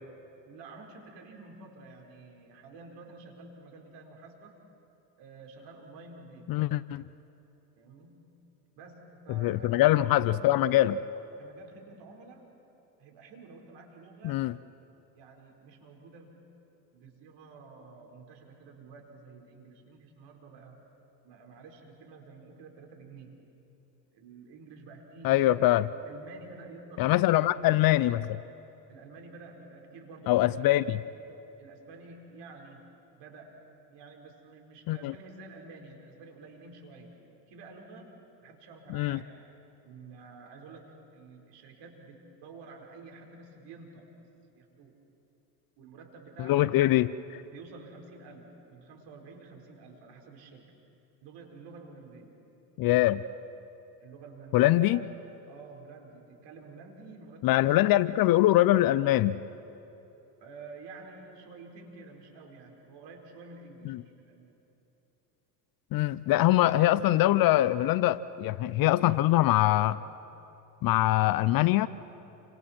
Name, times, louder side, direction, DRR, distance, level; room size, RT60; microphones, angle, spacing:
voice 1, 0.4-4.6 5.2-6.6 7.8-8.2 8.8-10.6 11.4-12.5 13.0-14.5 15.1-16.5 16.9-20.8 21.2-23.5 24.1-25.5 25.8-27.2 28.9-31.0 31.6-32.9 33.2-33.6 33.9-37.1 37.5-39.3 39.8-44.3 44.5-45.0 45.8-46.8 47.5-50.7 51.2-52.4 54.0-55.1 55.5-58.0 58.3-58.4 60.4-64.5, right 3 dB, 55° right, 1 dB, 4.5 m, -50 dB
voice 2, 6.5-7.0 9.4-11.0 14.2-14.6 25.2-25.9 27.0-28.4 30.3-31.0 34.9-35.1 38.9-39.2 46.4-47.4 52.8-53.2 54.5-55.0 57.4-59.4 63.9-64.0 65.9-70.0 70.8-71.9, left 15 dB, 45° left, 18 dB, 0.6 m, -23 dB
30.0 x 25.5 x 4.4 m, 3.0 s
hypercardioid pair, 75°, 49 cm